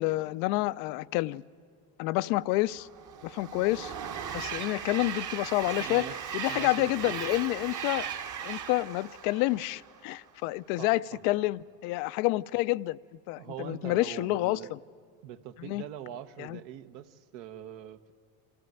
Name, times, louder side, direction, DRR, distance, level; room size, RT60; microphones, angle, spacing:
voice 1, 0.0-1.4 2.0-2.9 3.2-3.9 4.3-6.1 6.3-8.1 8.4-13.0 13.3-14.6 15.6-15.8 16.4-16.6, left 19 dB, 85° left, 0.5 m, -29 dB
Train, 2.7-10.2, right 8 dB, 40° right, 1.1 m, -38 dB
voice 2, 5.8-6.1 6.5-7.2 10.8-11.2 13.4-14.7 15.2-18.1, right 10 dB, 75° right, 1.1 m, -43 dB
25.0 x 13.5 x 9.1 m
supercardioid pair, 95°, 45 cm